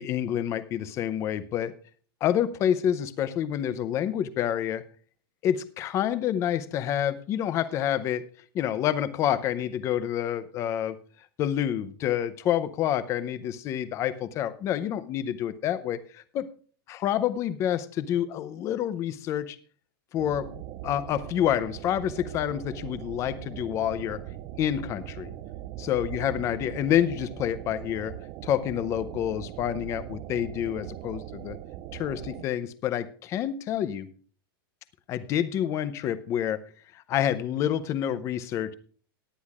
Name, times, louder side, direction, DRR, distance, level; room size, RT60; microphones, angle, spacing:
voice 1, 0.0-1.7 2.2-4.8 5.4-8.2 8.5-11.0 11.4-16.5 16.9-19.6 20.1-24.2 24.6-25.3 25.8-28.1 28.4-31.6 31.9-34.1 35.1-36.6 37.1-38.7, left 10 dB, 25° left, 15 dB, 0.6 m, -28 dB
sound 1, 20.2-32.4, right 13 dB, 30° right, 0.4 m, -40 dB
18.0 x 10.0 x 2.4 m, 0.42 s
supercardioid pair, 160°, 12 cm